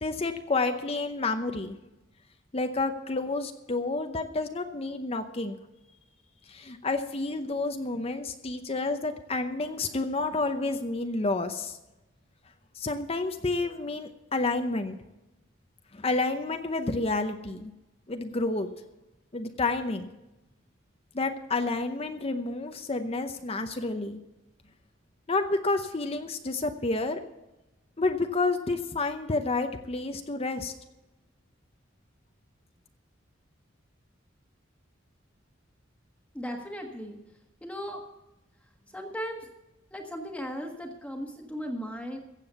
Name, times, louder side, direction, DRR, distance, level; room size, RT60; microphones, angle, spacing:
voice 1, 0.0-1.8 2.5-5.6 6.5-11.8 12.7-15.0 15.9-17.7 18.1-18.7 19.3-20.1 21.1-24.2 25.3-27.2 28.0-30.7, left 3 dB, 30° left, 7 dB, 0.7 m, -29 dB
voice 2, 36.3-37.2 37.6-38.0 38.9-39.5 39.9-42.2, equal, 5° left, 2 dB, 1.4 m, -37 dB
15.5 x 7.7 x 6.8 m, 0.98 s
head